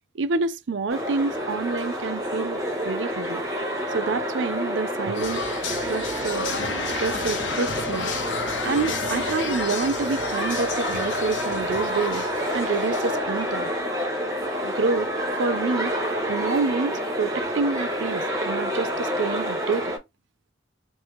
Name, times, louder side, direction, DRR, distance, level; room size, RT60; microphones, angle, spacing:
voice 1, 0.1-2.6 2.8-3.4 3.9-5.5 5.8-6.5 6.9-8.1 8.6-12.3 12.5-13.7 14.6-15.1 15.4-15.9 16.3-19.9, right 4 dB, 75° right, 0.5 m, -27 dB
sound 1, 0.9-20.0, equal, 15° right, 1.1 m, -28 dB
sound 2, 5.1-13.7, left 4 dB, 80° left, 1.0 m, -32 dB
3.2 x 3.0 x 3.1 m
head